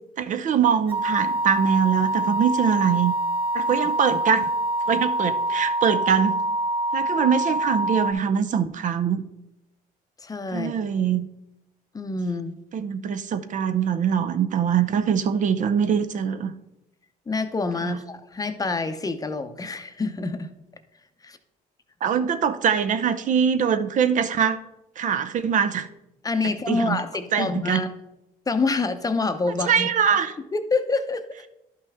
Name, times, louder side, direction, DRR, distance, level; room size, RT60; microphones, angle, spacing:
voice 1, 0.2-3.1 3.5-4.5 4.9-6.4 6.9-9.2 10.5-11.3 12.7-16.5 17.8-18.0 22.0-24.6 25.0-25.9 26.7-27.0 27.3-27.8 29.6-30.3, right 7 dB, 50° right, 10 dB, 0.6 m, -23 dB
sound 1, 0.9-8.1, right 1 dB, 30° right, 1.9 m, -25 dB
voice 2, 10.2-10.7 11.9-12.5 17.3-20.5 21.2-21.4 26.2-27.9 28.5-29.9 30.5-31.2, left 3 dB, 20° left, 8 dB, 0.7 m, -26 dB
11.0 x 5.7 x 3.5 m, 0.88 s
cardioid pair, 110°, 17 cm